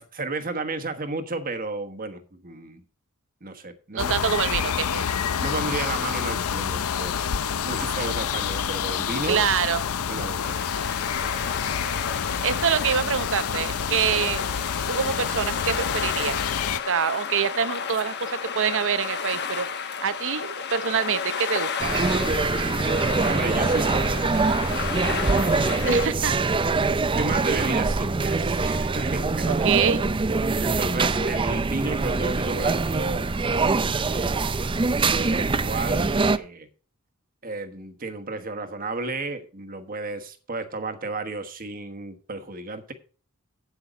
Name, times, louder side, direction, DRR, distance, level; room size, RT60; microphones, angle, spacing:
voice 1, 0.0-2.8 3.4-4.1 5.4-9.4 10.0-10.6 23.3-24.4 24.7-26.1 27.1-29.7 30.6-36.7 37.4-42.9, right 3 dB, 40° right, 1.3 m, -33 dB
voice 2, 3.9-5.1 9.3-9.8 12.4-14.5 14.9-16.4 16.9-19.7 20.0-21.9 25.8-26.4 29.5-30.1, right 7 dB, 60° right, 0.8 m, -25 dB
sound 1, 4.0-16.8, left 7 dB, 75° left, 0.6 m, -28 dB
sound 2, 10.4-26.1, left 6 dB, 50° left, 1.1 m, -32 dB
sound 3, 21.8-36.4, right 3 dB, 20° right, 0.4 m, -24 dB
8.7 x 8.2 x 5.1 m
head